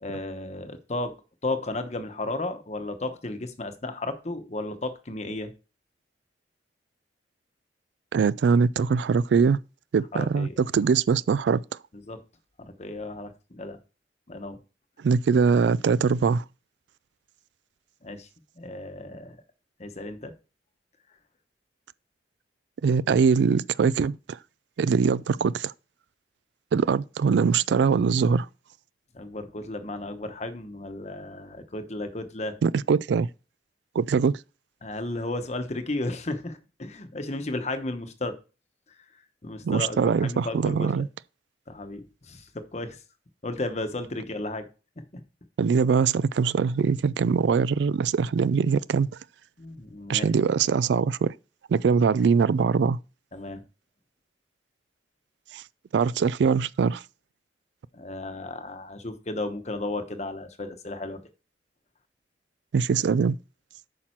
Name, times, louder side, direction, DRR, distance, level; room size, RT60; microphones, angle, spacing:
voice 1, 0.0-1.1 1.4-5.5 10.1-10.5 12.1-12.2 12.6-13.8 14.3-14.6 18.0-18.3 18.6-19.4 19.8-20.3 29.1-32.6 34.8-38.4 39.4-41.0 41.7-43.0 43.4-44.7 45.1-45.2 49.6-50.3 53.3-53.6 57.9-61.2, left 2 dB, 40° left, 1.0 m, -34 dB
voice 2, 8.1-9.6 9.9-11.6 15.0-16.4 22.8-24.4 24.8-25.7 26.7-28.5 32.6-33.3 34.0-34.3 39.6-41.1 45.6-49.1 50.1-51.3 51.7-53.0 55.5-55.6 55.9-57.0 62.7-63.4, right 5 dB, 75° right, 0.3 m, -22 dB
8.7 x 5.9 x 4.4 m
head